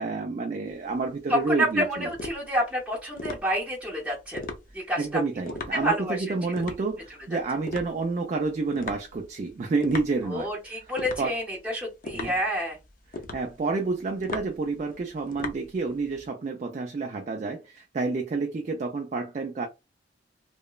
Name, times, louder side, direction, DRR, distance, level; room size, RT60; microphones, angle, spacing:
voice 1, 0.0-2.1 5.0-10.5 11.2-11.3 12.1-12.3 13.3-19.7, right 3 dB, 40° right, 0.3 m, -29 dB
sound 1, 0.7-16.3, left 3 dB, 50° left, 0.5 m, -40 dB
voice 2, 1.3-4.5 4.7-5.2 5.7-6.2 10.2-12.8, equal, 5° right, 0.6 m, -28 dB
2.9 x 2.1 x 2.2 m
head